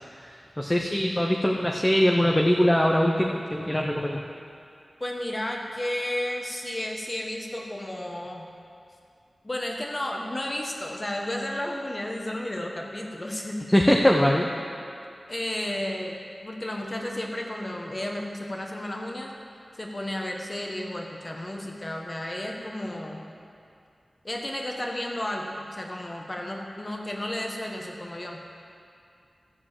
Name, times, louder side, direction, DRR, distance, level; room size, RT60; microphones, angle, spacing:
voice 1, 0.6-4.2 13.7-14.5, equal, 15° left, 0 dB, 0.8 m, -22 dB
voice 2, 5.0-8.5 9.4-13.6 15.3-16.2 16.4-19.4 19.8-23.3 24.2-28.4, left 1 dB, 35° left, 0 dB, 1.5 m, -32 dB
13.5 x 4.7 x 7.5 m, 2.5 s
cardioid pair, 40°, 0 cm